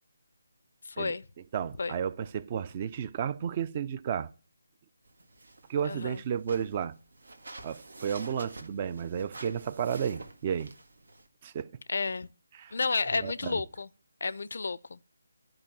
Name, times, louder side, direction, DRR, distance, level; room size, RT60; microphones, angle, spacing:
voice 1, 0.8-1.2 1.8-2.0 5.8-6.2 11.9-12.3 12.7-13.9 14.2-15.0, left 4 dB, 65° left, 0.5 m, -31 dB
voice 2, 1.5-4.3 5.7-6.9 7.6-10.7 11.4-11.7 12.6-12.7 13.2-13.6, right 8 dB, 30° right, 0.5 m, -32 dB
sound 1, 5.1-11.3, right 2 dB, 80° right, 1.8 m, -48 dB
11.0 x 5.2 x 7.5 m
figure-of-eight pair, 160°, 0 cm